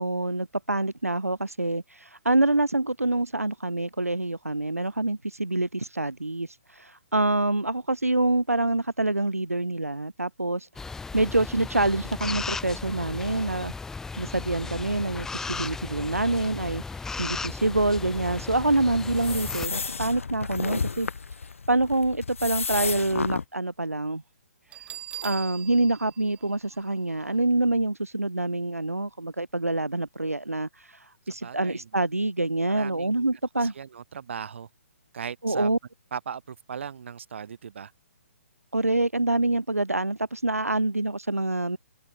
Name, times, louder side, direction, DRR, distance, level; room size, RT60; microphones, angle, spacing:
voice 1, 0.0-10.7 11.1-13.7 14.2-21.1 21.7-24.2 25.2-33.7 35.4-35.8 38.7-41.8, right 2 dB, 90° right, 0.8 m, -26 dB
sound 1, 10.8-19.7, left 4 dB, 5° left, 1.3 m, -36 dB
sound 2, 18.1-23.4, left 5 dB, 65° left, 1.3 m, -33 dB
Bell, 24.7-27.4, right 11 dB, 15° right, 1.4 m, -42 dB
voice 2, 31.3-31.9 32.7-33.3 33.6-34.7 35.1-35.7 36.1-37.9, right 7 dB, 55° right, 2.7 m, -38 dB
open air
figure-of-eight pair, 130°, 8 cm